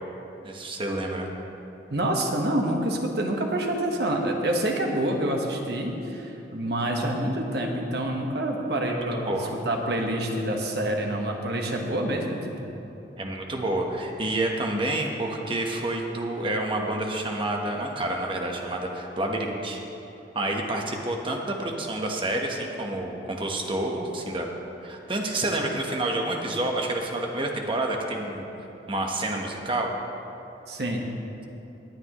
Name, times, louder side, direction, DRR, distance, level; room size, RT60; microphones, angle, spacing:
voice 1, 0.4-1.3 8.9-9.5 13.2-19.8 20.3-24.5 24.8-28.5 28.9-29.9, right 1 dB, 30° right, 1 dB, 1.1 m, -29 dB
voice 2, 1.9-9.3 9.6-12.7 30.7-31.0, right 1 dB, 65° right, 1 dB, 1.3 m, -27 dB
19.5 x 8.7 x 3.1 m, 2.9 s
head